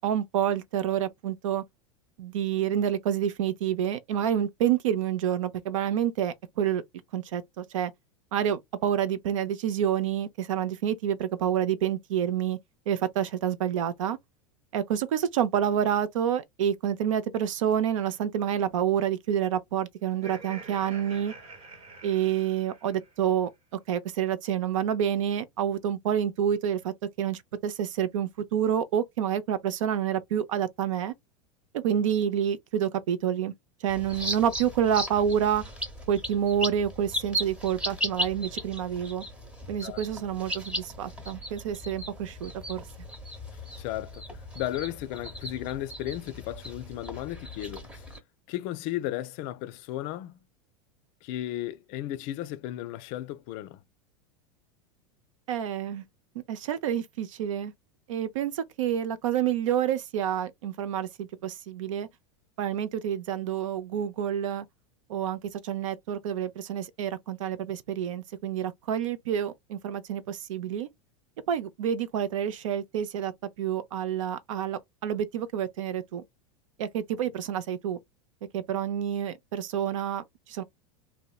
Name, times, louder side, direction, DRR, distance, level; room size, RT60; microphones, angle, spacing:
voice 1, 0.0-1.6 2.2-6.8 7.1-7.9 8.3-12.6 12.9-14.2 14.7-21.3 22.0-23.5 23.9-31.1 31.7-33.5 33.8-35.6 36.1-39.2 39.7-42.8 55.5-56.0 56.5-57.7 58.1-62.1 62.6-64.7 65.1-70.9 71.5-73.3 73.6-76.2 76.8-78.0 78.5-80.6, right 9 dB, 80° right, 0.5 m, -28 dB
Laughter, 20.1-23.3, right 3 dB, 40° right, 0.9 m, -46 dB
sound 1, 33.9-48.2, equal, 5° right, 0.8 m, -37 dB
voice 2, 43.8-44.2 44.5-48.1 48.5-50.4 51.2-53.8, left 14 dB, 55° left, 0.4 m, -34 dB
2.7 x 2.1 x 2.3 m
hypercardioid pair, 105°, 16 cm